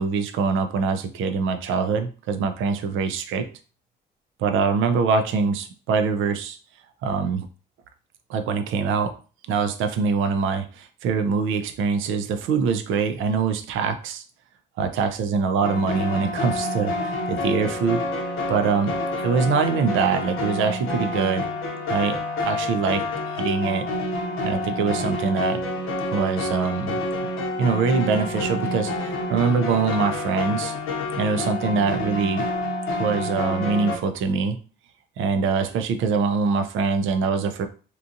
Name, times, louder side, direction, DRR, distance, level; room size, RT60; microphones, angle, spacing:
voice 1, 0.0-3.5 4.4-6.6 7.0-7.5 8.3-9.1 9.5-14.2 14.8-18.0 18.5-21.5 21.9-23.1 23.3-23.9 24.4-25.6 26.1-27.0 27.6-30.7 31.2-32.5 33.0-34.6 35.2-37.7, right 5 dB, 85° right, 8 dB, 0.5 m, -24 dB
sound 1, 15.6-34.0, left 2 dB, 90° left, 0.6 m, -28 dB
2.8 x 2.4 x 2.5 m, 0.36 s
cardioid pair, 90°, 20 cm